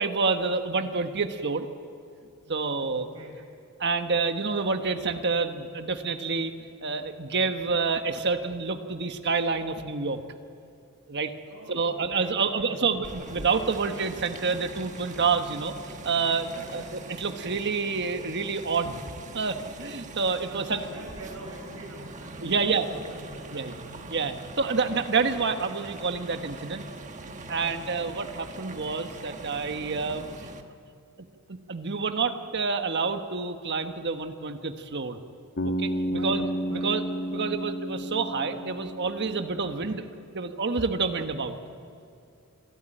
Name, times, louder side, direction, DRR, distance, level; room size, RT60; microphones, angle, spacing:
voice 1, 0.0-1.7 2.5-3.1 3.8-6.5 6.8-10.2 11.1-11.3 11.7-16.8 17.1-19.0 19.3-20.8 22.4-22.9 23.5-23.7 24.1-26.8 27.5-30.3 31.7-35.2 35.8-36.5 36.7-37.0 37.3-40.0 40.3-41.6, right 4 dB, 55° right, 7 dB, 1.2 m, -28 dB
voice 2, 2.5-3.4 11.4-13.0 16.5-17.0 20.4-24.2 24.6-24.8 27.5-27.8 36.0-36.9 37.2-37.5 39.6-40.0, right 1 dB, 80° right, 0 dB, 6.0 m, -45 dB
sound 1, 13.0-30.6, right 2 dB, 35° right, 1.3 m, -42 dB
Bass guitar, 35.6-39.7, equal, 50° left, 1.5 m, -31 dB
27.0 x 12.5 x 9.0 m, 2.5 s
head